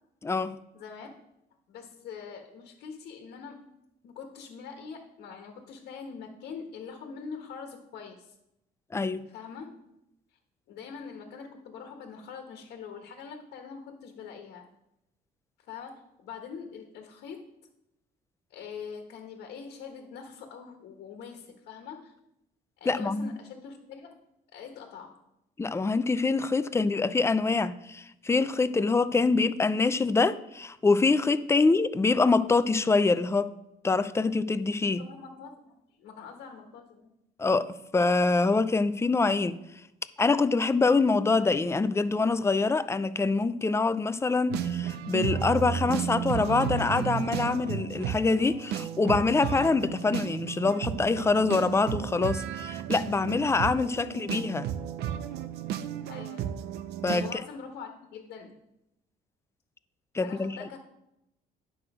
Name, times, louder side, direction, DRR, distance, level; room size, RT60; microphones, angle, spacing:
voice 1, 0.2-0.6 8.9-9.3 22.9-23.3 25.6-33.5 33.8-35.0 37.4-39.6 40.2-54.7 57.0-57.4 60.1-60.6, left 3 dB, 15° left, 0.5 m, -25 dB
voice 2, 0.7-1.1 1.7-3.6 4.0-8.3 9.3-9.7 10.7-14.6 15.6-17.5 18.5-22.1 22.8-24.2 24.5-25.2 31.5-31.7 35.0-37.1 53.8-54.1 56.1-56.5 57.1-58.5 60.2-60.8, left 6 dB, 75° left, 1.3 m, -44 dB
sound 1, 44.5-57.3, right 9 dB, 75° right, 0.6 m, -33 dB
9.9 x 6.2 x 4.9 m
cardioid pair, 110°, 17 cm